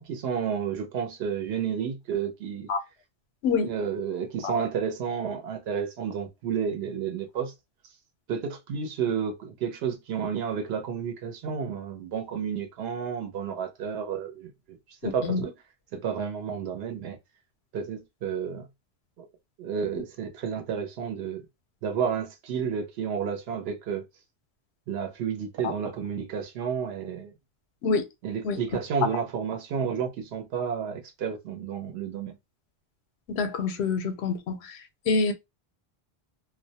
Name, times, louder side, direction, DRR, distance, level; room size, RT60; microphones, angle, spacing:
voice 1, 0.0-2.7 3.6-7.5 8.3-15.5 15.9-17.2 17.7-18.7 19.2-19.3 19.6-21.4 21.8-24.0 24.9-27.3 28.2-32.4, right 7 dB, 80° right, 0.9 m, -31 dB
voice 2, 15.0-15.4 25.6-25.7 27.8-28.0 28.4-28.6 33.3-34.8 35.1-35.3, left 4 dB, 85° left, 0.8 m, -26 dB
2.2 x 2.0 x 2.7 m
omnidirectional pair, 1.1 m